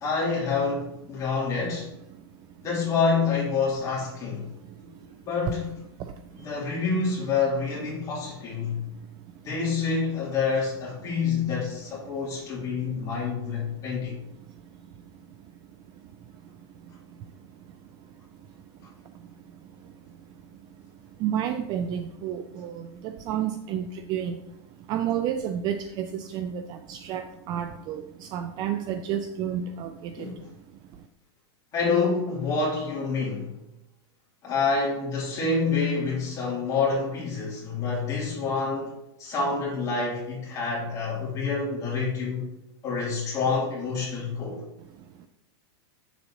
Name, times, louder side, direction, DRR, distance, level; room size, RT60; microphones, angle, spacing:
voice 1, 0.0-1.9 2.6-4.5 4.8-4.9 5.2-5.7 6.4-8.9 9.4-14.2 30.2-30.4 31.7-33.5 34.4-38.9 39.2-42.4 42.8-44.6, left 4 dB, 25° left, -5 dB, 2.9 m, -27 dB
voice 2, 21.2-22.8 23.3-24.4 24.9-28.0 28.3-30.1, right 9 dB, 30° right, 8 dB, 0.4 m, -30 dB
7.5 x 6.9 x 2.9 m, 0.89 s
supercardioid pair, 155°, 14 cm